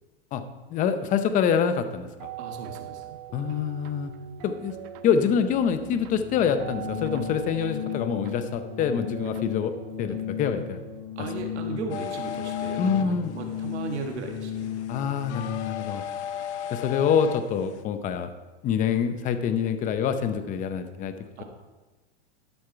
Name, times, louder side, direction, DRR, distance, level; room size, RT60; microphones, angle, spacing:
voice 1, 0.7-2.1 3.3-4.1 4.4-4.7 5.0-9.7 10.0-10.8 12.8-13.3 14.9-16.0 16.7-18.3 18.6-21.1, left 7 dB, 25° left, 9 dB, 0.6 m, -25 dB
sound 1, 2.2-11.0, right 11 dB, 40° right, 0.5 m, -43 dB
voice 2, 2.4-3.2 11.2-14.7 21.4-21.5, right 4 dB, 85° right, 3 dB, 1.8 m, -36 dB
Organ, 5.7-16.0, left 10 dB, 45° left, 3.1 m, -35 dB
sound 2, 11.9-17.8, left 9 dB, 85° left, 0.8 m, -37 dB
12.5 x 6.5 x 4.6 m, 1.2 s
supercardioid pair, 140°, 33 cm